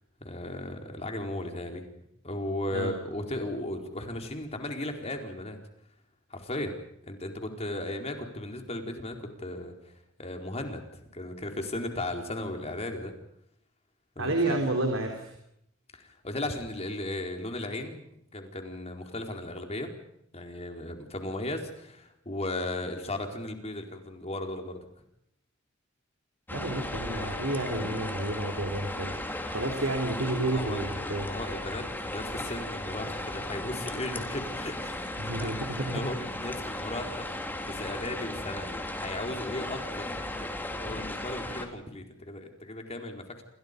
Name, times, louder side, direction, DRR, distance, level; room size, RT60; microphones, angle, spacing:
voice 1, 0.2-1.9 2.2-5.6 6.3-9.9 10.2-13.2 14.2-14.6 15.9-18.1 18.3-19.9 20.3-24.9 30.4-35.6 35.9-40.5 40.8-43.4, left 1 dB, 30° left, 4 dB, 4.4 m, -36 dB
voice 2, 14.2-15.4 26.5-29.2 29.5-31.3 35.2-36.1, right 2 dB, 70° right, 3 dB, 4.1 m, -30 dB
sound 1, 26.5-41.7, left 1 dB, 10° left, 3.4 m, -36 dB
28.5 x 27.0 x 5.3 m, 0.75 s
head